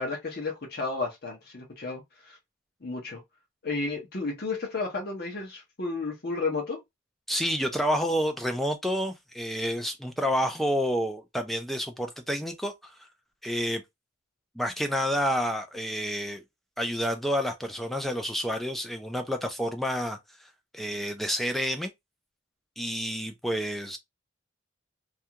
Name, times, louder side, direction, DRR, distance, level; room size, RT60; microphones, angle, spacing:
voice 1, 0.0-2.4 2.8-3.2 3.6-6.8, left 3 dB, 50° left, 0.7 m, -32 dB
voice 2, 7.3-13.0 13.4-13.8 14.6-16.4 16.8-20.2 20.7-21.9 22.8-24.0, equal, ahead, 0.4 m, -29 dB
2.4 x 2.3 x 2.8 m
head